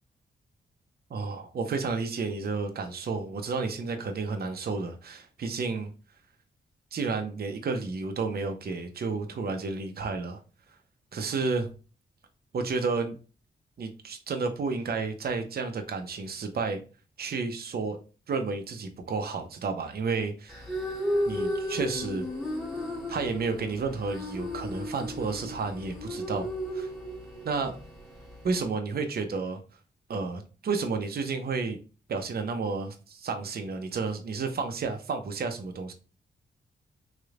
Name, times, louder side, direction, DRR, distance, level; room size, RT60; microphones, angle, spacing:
voice 1, 1.1-5.9 6.9-10.4 11.1-11.7 12.5-13.2 13.8-16.8 17.2-18.0 18.3-20.6 21.3-22.2 23.1-26.5 26.7-26.9 27.4-27.8 28.4-29.6 30.1-31.8 32.1-35.9, right 4 dB, 60° right, 6 dB, 0.7 m, -31 dB
sound 1, 20.5-28.7, equal, ahead, 1.5 m, -34 dB
3.9 x 3.2 x 2.4 m, 0.34 s
cardioid pair, 70°, 18 cm